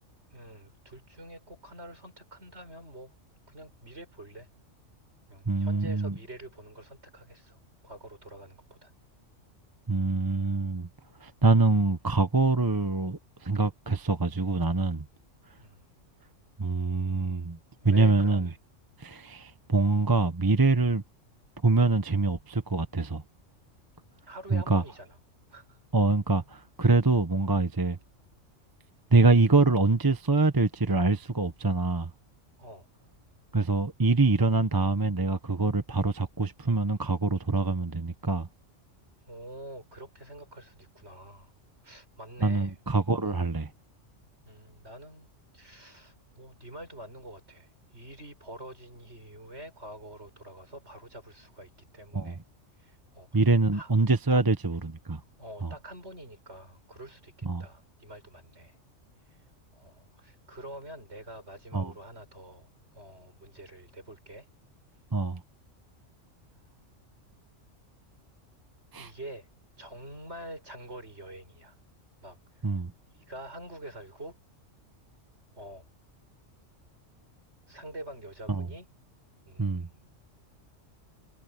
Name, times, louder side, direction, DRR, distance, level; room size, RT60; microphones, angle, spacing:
voice 1, 0.3-3.1 3.5-4.5 5.3-7.6 7.8-8.9 15.6-15.8 17.8-18.5 24.3-25.2 25.5-25.8 32.6-32.9 39.2-41.5 41.8-42.7 43.2-43.4 44.5-52.4 52.8-53.4 53.7-53.9 54.3-54.4 55.4-58.8 59.7-64.5 69.0-69.5 69.8-71.8 72.2-72.4 73.1-74.4 75.5-75.8 77.7-78.9 79.4-80.0, right 1 dB, 60° right, 8.2 m, -46 dB
voice 2, 5.5-6.1 9.9-10.9 11.2-15.0 16.6-17.6 17.8-18.5 19.0-21.0 21.6-23.2 24.5-24.8 25.9-28.0 29.1-32.1 33.5-38.5 42.4-43.7 52.1-52.4 53.3-55.2 55.6-55.7 57.4-57.6 61.7-61.9 65.1-65.4 68.9-69.1 72.6-72.9 78.5-78.7 79.6-79.9, right 3 dB, 20° right, 1.0 m, -25 dB
omnidirectional pair, 1.3 m